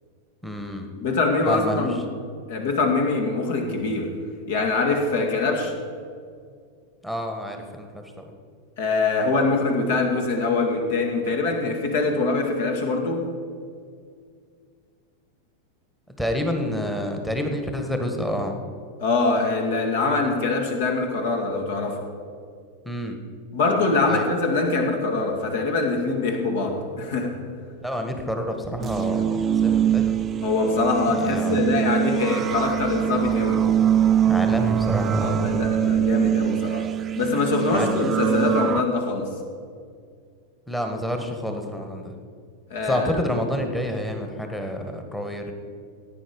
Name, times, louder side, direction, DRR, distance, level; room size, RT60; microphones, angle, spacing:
voice 1, 0.4-0.9 1.5-2.0 7.0-8.3 16.1-18.5 22.8-23.2 24.1-24.2 27.8-30.2 31.1-31.7 34.3-35.7 37.7-37.9 40.7-42.1 42.8-45.5, equal, 5° left, 4 dB, 1.5 m, -28 dB
voice 2, 1.0-2.0 2.5-4.2 4.5-5.7 8.8-13.3 19.0-22.0 23.5-27.4 30.4-33.7 35.2-36.9 37.1-39.3 42.7-43.2, left 3 dB, 55° left, 3 dB, 2.1 m, -23 dB
sound 1, 28.8-38.8, right 9 dB, 25° right, 0.4 m, -23 dB
16.0 x 9.3 x 5.3 m, 2.2 s
figure-of-eight pair, 90°, 0 cm